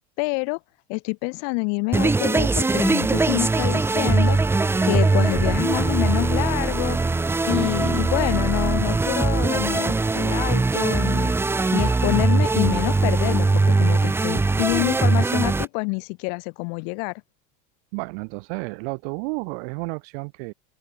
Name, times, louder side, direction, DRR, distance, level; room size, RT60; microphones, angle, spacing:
voice 1, 0.2-0.6 0.9-4.4 4.8-7.0 7.4-11.3 11.7-17.1, left 40 dB or more, 50° left, 2.3 m, -27 dB
sound 1, 1.9-15.7, right 3 dB, 5° right, 1.1 m, -21 dB
voice 2, 17.9-20.5, right 36 dB, 55° right, 2.7 m, -31 dB
open air
cardioid pair, 170°, 36 cm